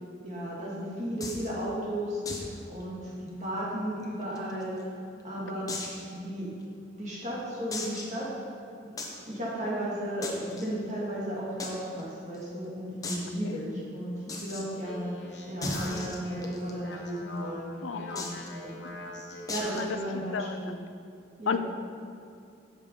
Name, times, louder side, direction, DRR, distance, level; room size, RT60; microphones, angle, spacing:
voice 1, 0.2-4.8 5.2-5.7 6.1-6.5 7.0-8.3 8.9-9.0 9.3-17.7 18.2-18.8 19.5-20.7 21.4-21.6, equal, 40° right, -6 dB, 2.2 m, -34 dB
sound 1, 1.2-1.5 2.3-2.5 2.8-2.9 3.3-3.4 4.0-4.8 5.7-6.0 6.6-6.7 7.7-8.2 9.0-9.2 10.2-10.7 11.6-11.7 12.0-12.1 12.3-12.4 13.0-13.3 14.3-14.6 15.6-16.7 18.2-18.5 19.5-19.9, left 2 dB, 20° left, 0.8 m, -36 dB
Speech, 14.5-20.0, left 1 dB, 70° left, 1.4 m, -44 dB
voice 2, 17.8-18.4 19.7-20.6 21.5-21.6, left 6 dB, 85° left, 9 dB, 0.5 m, -33 dB
8.1 x 6.6 x 5.4 m, 2.4 s
head